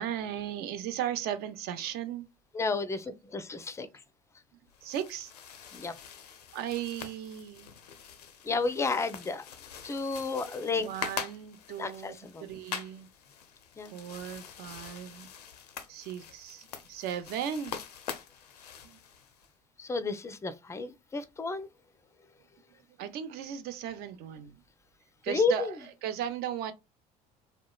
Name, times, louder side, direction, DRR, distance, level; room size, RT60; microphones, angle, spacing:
voice 1, 0.0-2.3 4.8-5.3 6.5-7.7 10.8-12.1 12.4-13.1 13.9-15.3 15.9-17.8 18.8-19.0 23.0-24.6 25.2-25.7 26.0-26.7, right 10 dB, 55° right, 0.5 m, -36 dB
voice 2, 2.5-3.9 5.7-5.9 8.4-9.5 9.8-10.9 11.8-12.5 13.8-13.9 19.8-21.7 25.3-25.8, left 3 dB, 15° left, 0.4 m, -31 dB
sound 1, 4.7-19.5, left 8 dB, 85° left, 0.4 m, -44 dB
2.8 x 2.1 x 2.2 m
hypercardioid pair, 65°, 20 cm